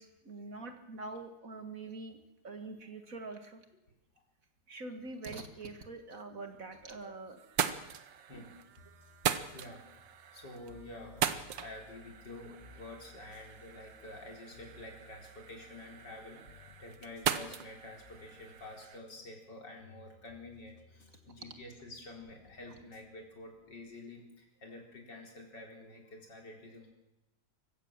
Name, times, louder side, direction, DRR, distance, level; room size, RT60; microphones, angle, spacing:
voice 1, 0.0-2.2 2.4-3.6 4.7-7.4 7.8-7.9, right 3 dB, 50° right, 7 dB, 2.2 m, -44 dB
sound 1, 6.5-7.1 7.4-19.0, right 9 dB, 85° right, 1.8 m, -39 dB
sound 2, 8.8-24.0, left 3 dB, 35° left, 1.9 m, -61 dB
voice 2, 9.5-9.8 10.3-26.9, left 2 dB, 70° left, 1 dB, 4.6 m, -49 dB
25.0 x 15.0 x 7.4 m, 0.93 s
omnidirectional pair, 1.9 m